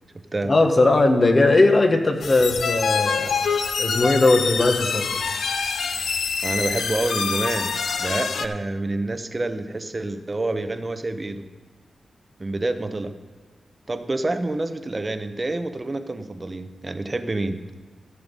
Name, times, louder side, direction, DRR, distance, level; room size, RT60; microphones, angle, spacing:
voice 1, 0.5-3.4 3.8-5.1, left 2 dB, 40° left, 5 dB, 1.4 m, -18 dB
sound 1, 2.2-8.5, left 5 dB, 75° left, 0.6 m, -25 dB
voice 2, 6.4-7.7 8.0-11.4 12.4-13.1 13.9-17.6, right 2 dB, 30° right, 9 dB, 0.9 m, -27 dB
14.5 x 6.9 x 5.4 m, 1.4 s
cardioid pair, 70°, 0 cm